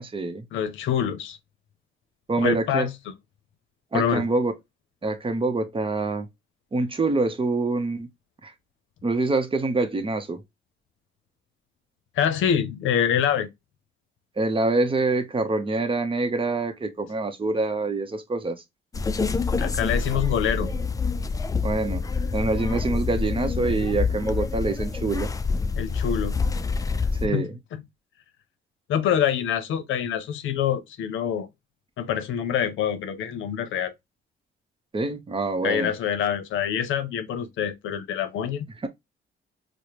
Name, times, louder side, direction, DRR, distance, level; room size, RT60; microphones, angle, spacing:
voice 1, 0.0-0.4 2.3-2.9 3.9-4.5 5.0-6.3 6.7-8.1 8.4-8.5 9.0-10.4 14.4-18.6 21.6-22.0 22.3-25.3 27.2-27.6 34.9-35.9 38.8-38.9, right 3 dB, 25° right, 0.8 m, -25 dB
voice 2, 0.5-1.4 2.4-2.9 3.9-4.3 12.2-13.5 19.6-20.7 25.8-26.4 27.2-27.4 27.7-27.8 28.9-31.5 32.0-33.9 35.6-38.7, left 9 dB, 80° left, 0.6 m, -25 dB
sound 1, 18.9-27.3, left 4 dB, 15° left, 0.4 m, -26 dB
4.7 x 2.1 x 2.9 m
cardioid pair, 90°, 20 cm